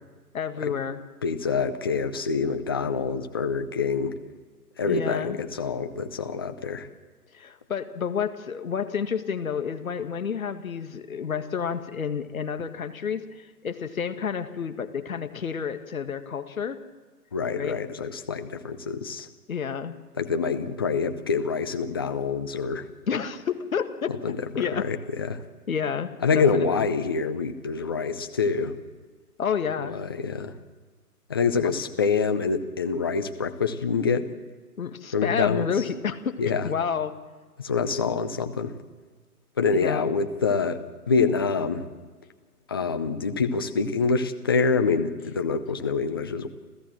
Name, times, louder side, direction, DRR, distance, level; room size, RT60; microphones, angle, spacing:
voice 1, 0.3-1.0 4.8-5.4 7.3-16.8 17.5-17.8 19.5-20.0 23.1-24.9 25.7-26.8 29.4-30.0 31.6-31.8 34.8-36.4 36.6-37.1 39.7-40.1, left 7 dB, 60° left, 8 dB, 1.9 m, -30 dB
voice 2, 1.2-4.1 4.8-6.9 17.3-19.3 20.2-22.8 24.1-25.4 26.2-28.8 29.9-30.5 31.3-34.3 35.1-35.7 36.4-36.7 37.6-38.7 39.6-40.8 41.1-41.9 42.7-46.5, left 5 dB, 15° left, 7 dB, 0.6 m, -26 dB
28.0 x 15.0 x 7.6 m, 1.5 s
figure-of-eight pair, 140°, 47 cm